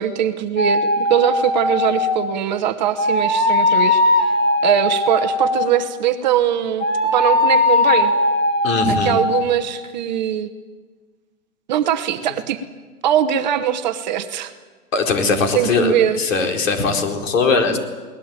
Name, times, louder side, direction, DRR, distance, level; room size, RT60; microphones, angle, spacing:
voice 1, 0.0-4.0 4.6-6.8 7.1-8.1 8.9-10.5 11.7-12.6 13.0-14.5 15.5-16.2, right 10 dB, 30° right, 9 dB, 1.0 m, -21 dB
sound 1, 0.6-2.3 3.0-5.9 6.8-9.5, left 2 dB, 25° left, 2.3 m, -19 dB
voice 2, 8.6-9.1 14.9-17.8, left 4 dB, 55° left, 3 dB, 4.4 m, -20 dB
22.0 x 19.0 x 8.9 m, 1.4 s
hypercardioid pair, 155°, 45 cm